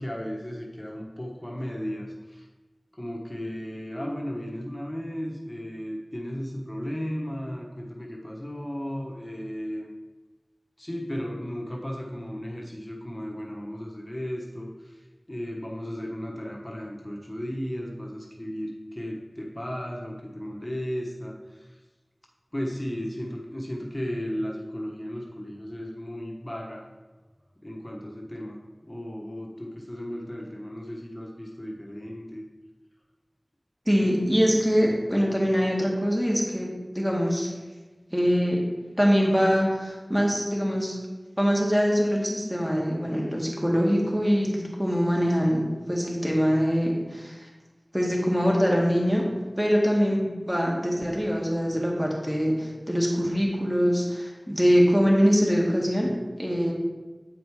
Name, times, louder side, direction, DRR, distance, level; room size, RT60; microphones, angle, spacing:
voice 1, 0.0-2.5 2.9-9.9 10.8-21.8 22.5-26.9 27.6-32.4, equal, 25° left, -1 dB, 1.2 m, -35 dB
voice 2, 33.9-36.7 36.9-37.5 38.1-38.6 39.0-40.9 41.4-47.4 47.9-49.2 49.6-56.1 56.4-56.7, equal, 10° right, -2 dB, 1.9 m, -23 dB
8.7 x 5.0 x 4.8 m, 1.2 s
wide cardioid pair, 40°, 0 cm